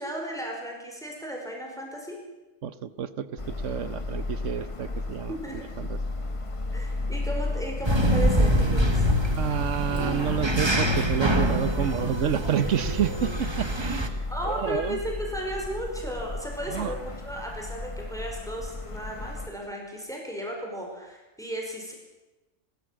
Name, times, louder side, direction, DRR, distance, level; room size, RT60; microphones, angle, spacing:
voice 1, 0.0-2.2 5.3-5.7 6.7-9.1 14.3-21.9, equal, ahead, 0 dB, 5.0 m, -35 dB
voice 2, 2.6-6.0 9.4-14.2 14.4-15.0 16.7-16.9, right 8 dB, 70° right, 14 dB, 1.3 m, -29 dB
sound 1, 3.4-19.5, left 2 dB, 25° left, 1.2 m, -35 dB
sound 2, 7.8-14.1, equal, 20° right, 1.8 m, -25 dB
28.5 x 13.5 x 7.6 m, 1.1 s
omnidirectional pair, 1.3 m